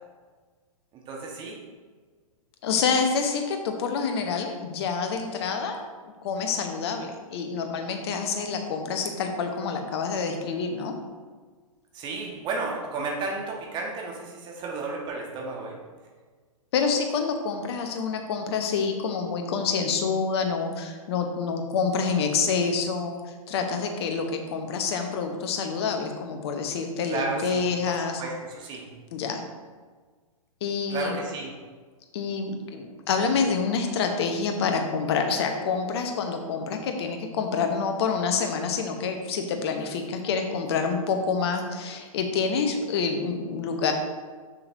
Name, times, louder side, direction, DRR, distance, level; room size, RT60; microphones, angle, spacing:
voice 1, 1.1-1.6 11.9-15.8 27.1-28.9 30.9-31.5, right 3 dB, 25° right, -1 dB, 1.4 m, -33 dB
voice 2, 2.6-10.9 16.7-23.2 23.5-28.2 29.1-29.4 30.6-31.2 32.1-43.9, left 5 dB, 45° left, 5 dB, 0.9 m, -27 dB
6.8 x 6.8 x 2.7 m, 1.5 s
figure-of-eight pair, 110°, 18 cm